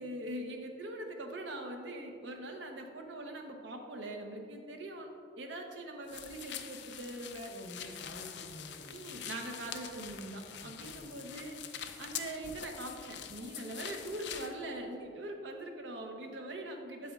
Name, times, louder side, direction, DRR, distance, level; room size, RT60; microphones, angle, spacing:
voice 1, 0.0-5.1 5.4-7.5 8.9-17.1, right 1 dB, 85° right, 3 dB, 0.8 m, -42 dB
sound 1, 6.1-14.5, left 9 dB, 75° left, 0.5 m, -45 dB
voice 2, 7.5-9.3 10.6-11.3, equal, 55° left, 2 dB, 0.8 m, -50 dB
8.5 x 8.2 x 2.5 m, 2.5 s
head